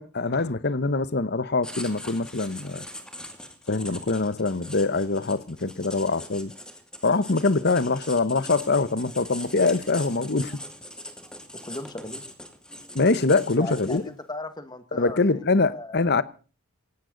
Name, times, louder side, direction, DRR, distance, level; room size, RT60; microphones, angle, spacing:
voice 1, 0.0-2.9 3.7-6.5 7.0-10.6 12.9-14.0 14.9-16.2, left 3 dB, 50° left, 1.0 m, -24 dB
Writing, 1.6-14.2, left 1 dB, 5° left, 2.3 m, -41 dB
voice 2, 11.5-12.2 13.6-16.2, left 2 dB, 20° left, 1.8 m, -38 dB
18.0 x 17.5 x 3.9 m
head